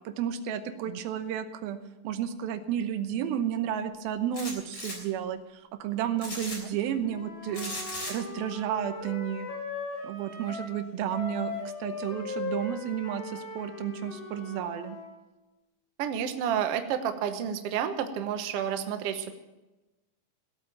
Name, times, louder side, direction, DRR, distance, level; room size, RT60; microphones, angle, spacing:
voice 1, 0.0-1.8 2.0-9.5 10.0-15.0, right 9 dB, 90° right, 10 dB, 2.9 m, -32 dB
sound 1, 4.3-5.0 6.2-6.6 7.5-8.1, left 1 dB, 30° left, 3.9 m, -36 dB
Wind instrument woodwind instrument, 7.0-10.8 11.1-15.1, left 3 dB, 55° left, 5.0 m, -39 dB
voice 2, 16.0-19.3, right 8 dB, 65° right, 8 dB, 1.5 m, -30 dB
16.5 x 8.8 x 7.6 m, 1.1 s
omnidirectional pair, 4.1 m